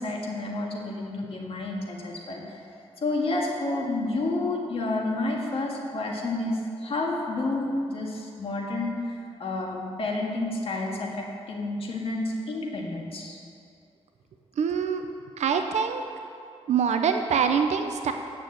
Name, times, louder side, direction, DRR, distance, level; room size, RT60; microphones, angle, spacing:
voice 1, 0.0-2.6 3.0-9.1 9.4-13.4, left 2 dB, 55° left, -1 dB, 1.8 m, -30 dB
voice 2, 14.6-15.1 15.4-16.0 16.7-18.1, right 6 dB, 80° right, 6 dB, 0.6 m, -24 dB
9.1 x 6.9 x 7.7 m, 2.4 s
wide cardioid pair, 115°, 11 cm